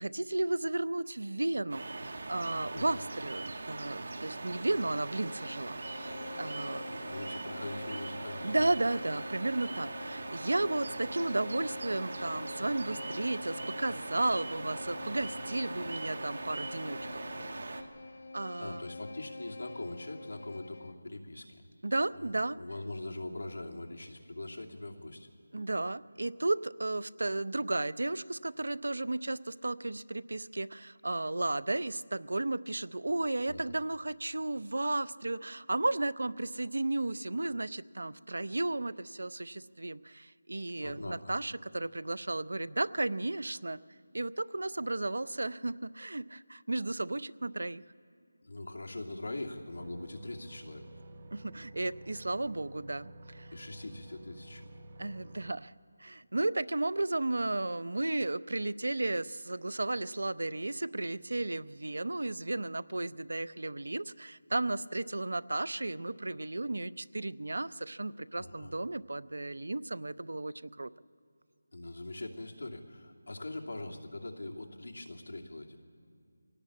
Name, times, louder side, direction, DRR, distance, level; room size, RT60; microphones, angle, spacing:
voice 1, 0.0-6.1 6.3-6.9 8.4-17.7 18.3-18.9 21.8-22.6 25.5-43.8 44.1-47.8 51.3-53.5 55.0-55.7 56.0-70.9, right 2 dB, 75° right, 17 dB, 0.6 m, -34 dB
sound 1, 1.7-17.8, right 2 dB, 45° right, 1.5 m, -41 dB
Bowed string instrument, 4.7-21.1, left 3 dB, 40° left, 0.6 m, -46 dB
voice 2, 6.9-8.6 18.6-21.6 22.1-25.3 33.5-33.7 40.8-41.3 48.4-50.8 53.5-54.6 68.3-68.7 71.7-75.8, left 2 dB, 65° left, 0 dB, 2.7 m, -42 dB
sound 2, 49.8-55.5, right 1 dB, 20° right, 1.1 m, -51 dB
22.5 x 17.5 x 8.5 m, 2.4 s
figure-of-eight pair, 180°, 0 cm